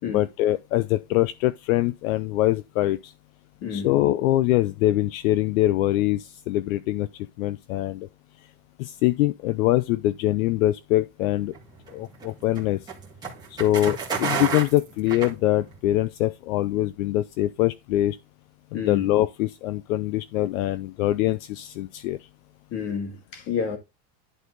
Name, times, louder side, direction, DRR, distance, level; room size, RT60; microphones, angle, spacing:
voice 1, 0.1-3.1 3.7-7.1 7.4-8.1 8.8-11.5 11.9-12.8 13.5-18.2 18.7-22.2, left 15 dB, 65° left, 0.7 m, -23 dB
voice 2, 3.6-3.9 18.7-19.0 22.7-23.8, left 6 dB, 35° left, 2.0 m, -29 dB
sound 1, 11.5-15.9, right 5 dB, 10° right, 1.9 m, -31 dB
11.0 x 4.2 x 3.9 m
supercardioid pair, 175°, 43 cm